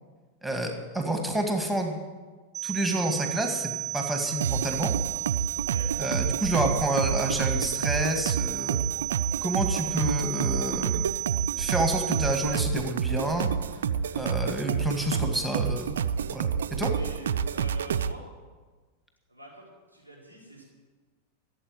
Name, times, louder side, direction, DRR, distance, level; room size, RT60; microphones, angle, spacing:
voice 1, 0.4-2.0 2.6-4.9 6.0-8.8 9.4-11.1 11.6-13.5 14.1-16.0 16.3-16.5 16.8-16.9, right 1 dB, ahead, 3 dB, 2.1 m, -29 dB
sound 1, 2.5-12.5, right 11 dB, 20° right, 0.6 m, -33 dB
sound 2, 4.4-18.1, right 7 dB, 65° right, 0.5 m, -29 dB
voice 2, 5.5-5.9 16.9-18.2 19.3-20.6, right 1 dB, 85° left, -4 dB, 4.7 m, -45 dB
14.5 x 8.1 x 9.1 m, 1.4 s
figure-of-eight pair, 90°, 0 cm